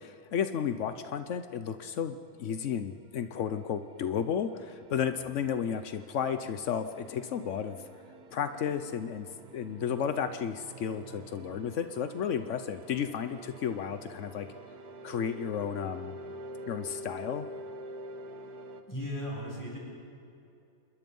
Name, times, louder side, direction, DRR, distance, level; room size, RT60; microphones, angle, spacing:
voice 1, 0.0-7.8 8.3-9.3 9.5-14.5 15.0-16.1 16.7-17.5, left 8 dB, 75° left, 10 dB, 0.6 m, -33 dB
sound 1, 2.7-18.8, right 1 dB, 50° right, 1.6 m, -47 dB
voice 2, 18.9-19.8, equal, 10° left, -4 dB, 6.8 m, -37 dB
27.5 x 21.5 x 5.4 m, 2.6 s
omnidirectional pair, 2.3 m